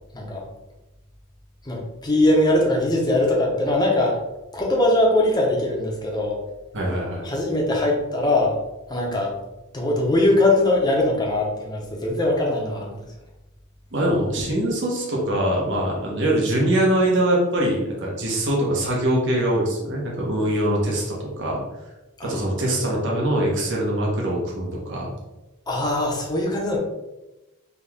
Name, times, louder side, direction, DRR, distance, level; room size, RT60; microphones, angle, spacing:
voice 1, 1.7-4.2 4.5-6.4 7.2-8.6 8.9-9.3 9.7-13.0 22.2-22.4 25.7-26.8, left 1 dB, 20° left, -1 dB, 0.8 m, -21 dB
voice 2, 6.7-7.2 13.9-21.6 22.2-25.1, right 1 dB, 55° right, -3 dB, 1.1 m, -23 dB
4.1 x 2.9 x 3.5 m, 1.0 s
head